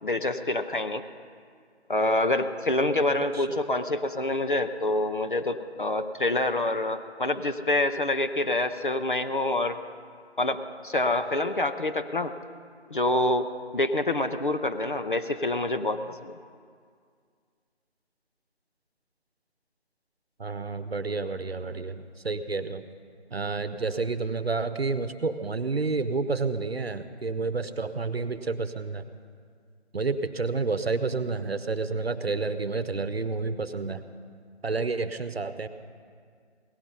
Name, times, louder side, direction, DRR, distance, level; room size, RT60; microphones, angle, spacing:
voice 1, 0.0-1.0 1.9-9.8 10.4-12.3 12.9-13.5 13.7-16.3, left 2 dB, 50° left, 7 dB, 0.7 m, -26 dB
voice 2, 20.4-22.9 23.3-29.0 29.9-34.0 34.6-35.7, right 4 dB, 60° right, 11 dB, 0.9 m, -30 dB
17.5 x 13.5 x 5.5 m, 2.1 s
figure-of-eight pair, 160°, 34 cm